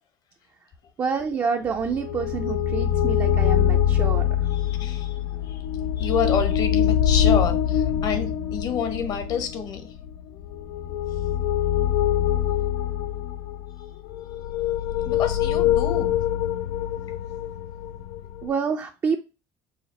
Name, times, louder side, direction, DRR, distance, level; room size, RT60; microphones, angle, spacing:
voice 1, 1.0-4.3 18.4-19.2, right 5 dB, 35° right, 0.5 m, -27 dB
sound 1, 1.8-18.5, left 9 dB, 85° left, 0.3 m, -24 dB
voice 2, 4.5-5.7 6.0-10.0 15.0-16.1, left 7 dB, 55° left, 1.0 m, -29 dB
4.8 x 2.0 x 4.1 m
cardioid pair, 110°, 8 cm